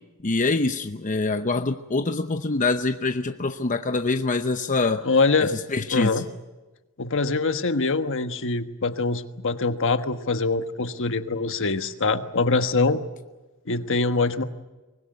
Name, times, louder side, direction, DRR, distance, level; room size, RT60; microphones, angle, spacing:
voice 1, 0.2-5.1 5.4-6.2, left 3 dB, 35° left, 8 dB, 0.8 m, -25 dB
voice 2, 5.0-5.5 5.9-6.3 7.0-13.0 13.7-14.4, left 3 dB, 60° left, 9 dB, 1.4 m, -24 dB
24.0 x 20.5 x 9.3 m, 1.2 s
head